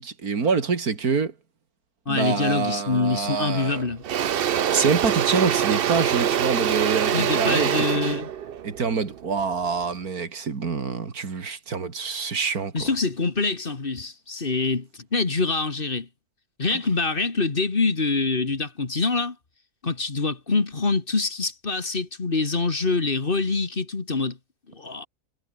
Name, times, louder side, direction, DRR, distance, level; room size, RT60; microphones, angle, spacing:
voice 1, 0.0-1.3 2.1-3.8 4.7-7.7 7.9-8.2 8.6-12.9 16.7-16.8, right 5 dB, 75° right, 2.9 m, -26 dB
voice 2, 2.1-4.0 7.1-8.3 12.7-16.1 16.6-19.4 19.8-24.4 24.7-25.1, left 3 dB, 35° left, 2.0 m, -25 dB
Engine / Drill, 3.1-3.4 3.7-9.8, right 9 dB, 55° right, 0.7 m, -24 dB
omnidirectional pair, 1.6 m